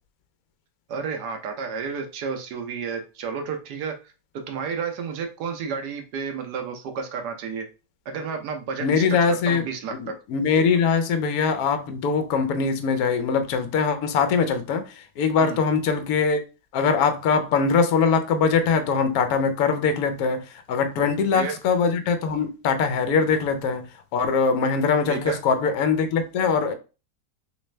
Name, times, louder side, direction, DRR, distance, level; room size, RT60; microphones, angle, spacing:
voice 1, 0.9-3.9 4.5-7.7 8.1-9.9 15.4-15.6 21.0-21.1 21.3-21.5 25.1-25.4, right 5 dB, 75° right, 1.2 m, -31 dB
voice 2, 8.8-9.7 10.0-16.4 16.7-26.7, left 5 dB, 70° left, 1.1 m, -22 dB
3.3 x 3.1 x 3.1 m
omnidirectional pair, 1.8 m